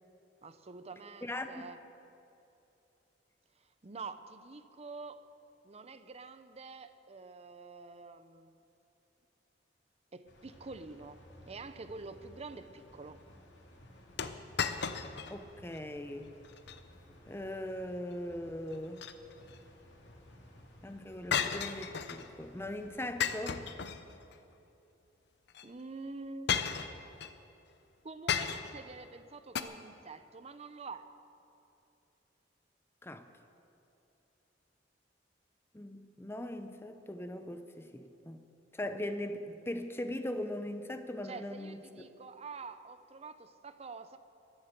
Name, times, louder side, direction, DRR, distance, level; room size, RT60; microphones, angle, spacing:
voice 1, 0.4-1.8 3.8-5.2 5.6-8.6 10.1-13.2 25.6-26.6 28.0-31.1 41.2-44.2, right 4 dB, 35° right, 11 dB, 0.6 m, -47 dB
voice 2, 1.2-1.7 15.3-16.3 17.3-19.1 20.8-23.6 33.0-33.3 35.7-38.4 38.7-42.0, left 1 dB, 15° left, 8 dB, 0.7 m, -40 dB
sound 1, 10.3-23.7, equal, 85° left, 2.2 m, -57 dB
sound 2, 14.2-15.4 15.7-15.8 16.4-16.8 18.7-19.6 21.3-22.3 23.2-24.4 25.5-25.6 26.5-27.3 28.3-28.9 29.5-29.6, left 7 dB, 65° left, 0.7 m, -34 dB
22.5 x 8.0 x 6.7 m, 2.8 s
head